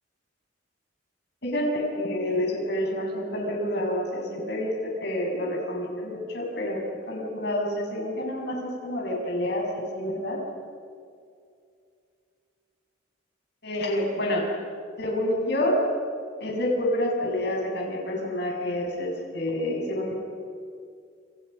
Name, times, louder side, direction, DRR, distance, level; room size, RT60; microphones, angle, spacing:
voice 1, 1.4-10.4 13.6-14.5 15.0-15.8 16.4-20.1, left 1 dB, 55° left, 0 dB, 7.6 m, -28 dB
29.0 x 28.0 x 5.8 m, 2.3 s
head